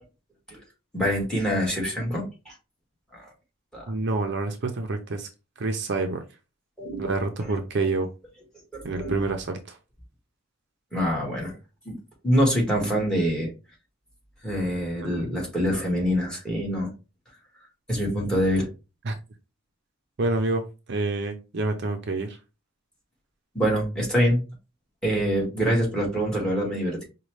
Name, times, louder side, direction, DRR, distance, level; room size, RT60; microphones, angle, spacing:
voice 1, 0.9-2.5 3.1-3.2 3.7-3.8 6.8-7.1 8.7-9.2 10.9-11.5 11.8-12.0 12.2-13.5 14.4-16.9 17.9-18.7 23.5-24.4 25.0-27.0, equal, 5° left, -1 dB, 1.7 m, -25 dB
voice 2, 3.9-5.3 5.6-6.2 7.0-8.1 8.8-9.8 15.0-15.3 19.0-19.2 20.2-22.4, right 3 dB, 55° right, 6 dB, 0.6 m, -28 dB
5.1 x 2.3 x 3.1 m, 0.30 s
head